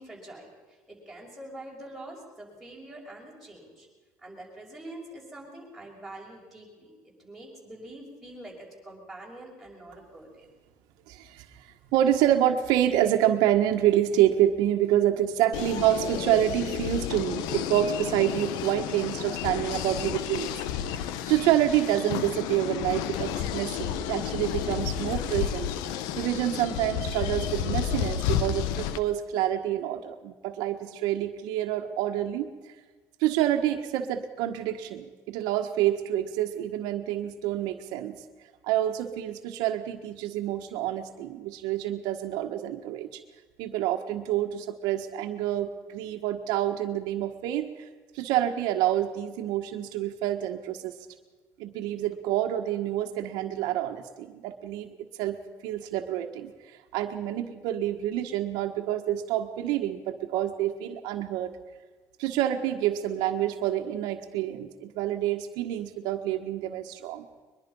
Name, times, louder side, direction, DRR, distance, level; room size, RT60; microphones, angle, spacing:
voice 1, 0.0-3.9 4.2-10.5, right 1 dB, ahead, -4 dB, 5.9 m, -45 dB
voice 2, 11.1-21.0 21.3-25.7 26.1-32.7 33.2-38.2 38.6-43.2 43.6-47.9 48.1-50.9 51.6-55.4 55.6-61.5 62.2-67.3, right 12 dB, 75° right, 5 dB, 1.5 m, -27 dB
sound 1, 15.5-29.0, left 10 dB, 85° left, 1.1 m, -31 dB
22.5 x 22.0 x 5.5 m, 1.3 s
cardioid pair, 160°, 7 cm